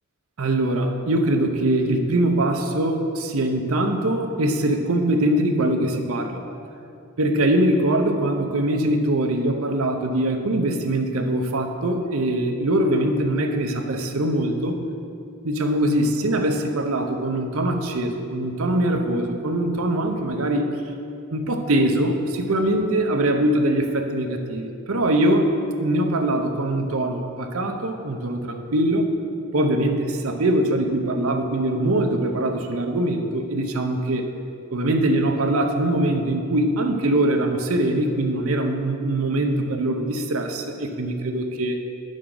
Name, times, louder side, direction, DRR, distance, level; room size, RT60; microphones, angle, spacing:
voice 1, 0.4-6.4 7.2-14.8 15.4-20.7 21.3-29.1 29.5-34.3 34.7-41.8, right 1 dB, 75° right, 5 dB, 0.7 m, -22 dB
9.8 x 6.3 x 3.8 m, 2.6 s
head